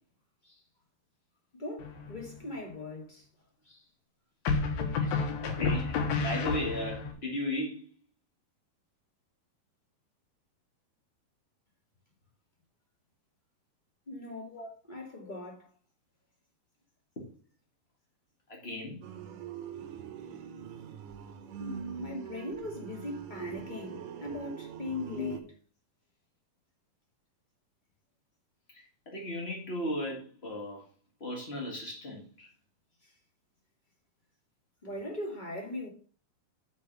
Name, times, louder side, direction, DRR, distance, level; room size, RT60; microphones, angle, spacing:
voice 1, 1.5-3.2 3.6-3.8 5.0-5.3 14.1-14.6 14.9-15.7 21.6-25.4 33.0-33.1 34.8-35.9, left 1 dB, 15° left, 2.1 m, -40 dB
sound 1, 1.8-2.4 4.4-7.1, left 4 dB, 90° left, 3.3 m, -30 dB
voice 2, 5.0-7.9 14.5-14.7 15.2-15.3 17.2-17.3 18.5-19.0 22.1-22.2 25.2-25.3 28.7-30.8 31.2-32.5, left 1 dB, 70° left, 0.5 m, -36 dB
sound 2, 19.0-25.4, right 8 dB, 70° right, 2.4 m, -43 dB
6.6 x 5.7 x 6.7 m
omnidirectional pair, 4.3 m